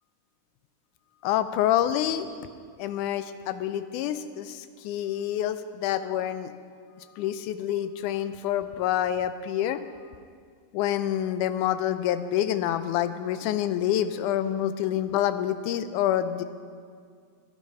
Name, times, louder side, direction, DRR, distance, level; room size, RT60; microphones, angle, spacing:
voice 1, 1.2-2.3 2.8-6.5 7.2-9.8 10.7-16.4, left 11 dB, 80° left, 11 dB, 2.0 m, -27 dB
14.0 x 11.0 x 5.6 m, 2.1 s
omnidirectional pair, 3.8 m